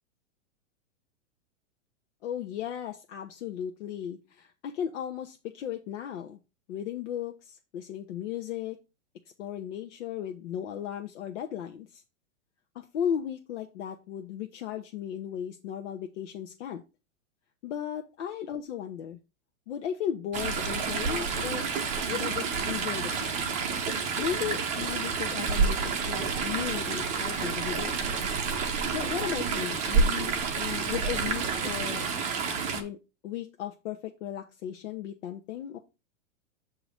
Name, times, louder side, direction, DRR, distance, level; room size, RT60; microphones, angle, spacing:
voice 1, 2.2-6.4 6.7-8.8 9.4-12.0 12.7-16.8 17.6-19.2 19.7-21.7 22.1-23.5 24.2-28.1 28.9-32.1 32.7-33.0 33.2-35.8, left 9 dB, 65° left, 4 dB, 0.9 m, -36 dB
Chatter / Stream, 20.3-32.8, right 5 dB, 20° right, 0.8 m, -29 dB
8.1 x 3.0 x 5.0 m, 0.29 s
supercardioid pair, 155°, 39 cm